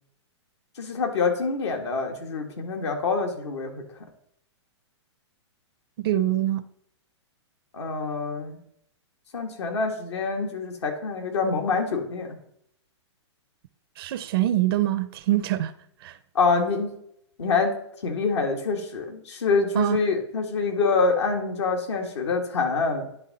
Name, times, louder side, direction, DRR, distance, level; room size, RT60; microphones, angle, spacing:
voice 1, 0.8-3.7 7.7-8.6 9.3-12.3 16.4-16.9 17.4-23.1, left 4 dB, 70° left, 1.8 m, -26 dB
voice 2, 6.0-6.6 14.0-15.7 16.0-16.2 19.7-20.0, right 13 dB, 55° right, 0.6 m, -24 dB
10.0 x 3.7 x 4.1 m
hypercardioid pair, 125°, 15 cm